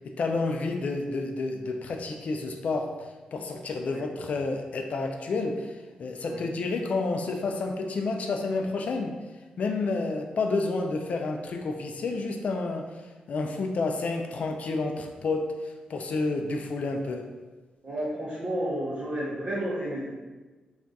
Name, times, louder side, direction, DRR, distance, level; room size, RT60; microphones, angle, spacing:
voice 1, 0.0-2.9 3.3-9.1 9.6-13.0 13.3-17.3, left 3 dB, 60° left, 4 dB, 0.3 m, -30 dB
voice 2, 17.8-20.1, right 1 dB, 55° right, -7 dB, 0.6 m, -31 dB
2.4 x 2.3 x 3.9 m, 1.2 s
wide cardioid pair, 125°, 3 cm